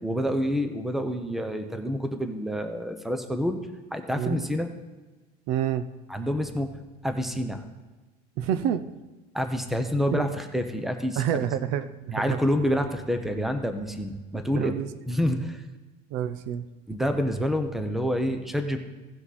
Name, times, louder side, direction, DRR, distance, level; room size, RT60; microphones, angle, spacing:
voice 1, 0.0-3.6 3.9-4.7 6.1-6.7 7.0-7.6 9.3-11.5 12.1-14.8 15.1-15.6 16.9-18.8, equal, ahead, 7 dB, 0.7 m, -28 dB
voice 2, 4.1-4.5 5.5-5.9 8.4-8.9 10.1-10.3 11.2-12.4 14.6-14.9 16.1-16.7, right 10 dB, 65° right, 13 dB, 0.6 m, -28 dB
16.5 x 5.8 x 4.1 m, 1.2 s
cardioid pair, 145°, 20 cm